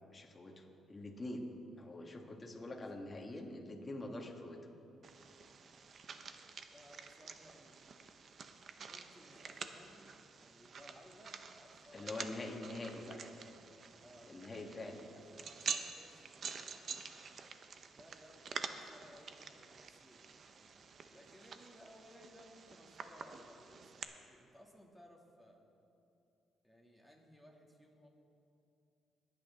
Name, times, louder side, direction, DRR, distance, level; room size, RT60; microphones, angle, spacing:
voice 1, 0.0-1.5 1.8-4.6 11.9-13.2 14.3-15.1, left 2 dB, 30° left, 2 dB, 1.6 m, -45 dB
sound 1, 5.0-24.0, right 5 dB, 50° right, 0.7 m, -48 dB
voice 2, 6.7-8.0 8.8-12.5 14.0-16.9 17.9-20.8 21.1-25.6 26.6-28.1, equal, 5° right, -1 dB, 2.2 m, -61 dB
20.5 x 8.8 x 3.6 m, 2.7 s
cardioid pair, 90°, 0 cm